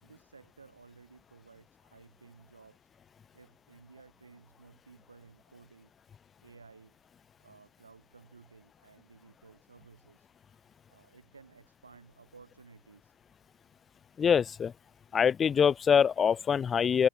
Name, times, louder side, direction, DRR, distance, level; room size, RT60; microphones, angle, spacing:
voice 1, 0.0-2.9 3.3-5.9 6.4-7.0 7.4-10.3 10.9-13.2, right 4 dB, 75° right, 3.9 m, -56 dB
voice 2, 14.2-14.7 15.1-17.1, left 7 dB, 20° left, 0.4 m, -24 dB
figure-of-eight pair, 90°, 0 cm